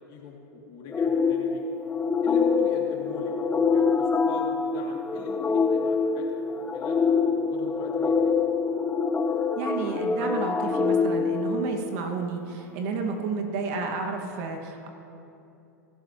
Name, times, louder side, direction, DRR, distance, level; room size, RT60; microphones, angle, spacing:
voice 1, 0.1-1.8 2.2-3.3 3.7-7.0 7.3-8.3, left 5 dB, 50° left, -1 dB, 2.6 m, -43 dB
sound 1, 0.9-12.2, left 5 dB, 15° left, 0.7 m, -25 dB
voice 2, 9.6-14.9, right 4 dB, 60° right, 2 dB, 1.9 m, -31 dB
21.0 x 12.0 x 3.1 m, 2.7 s
hypercardioid pair, 105°, 9 cm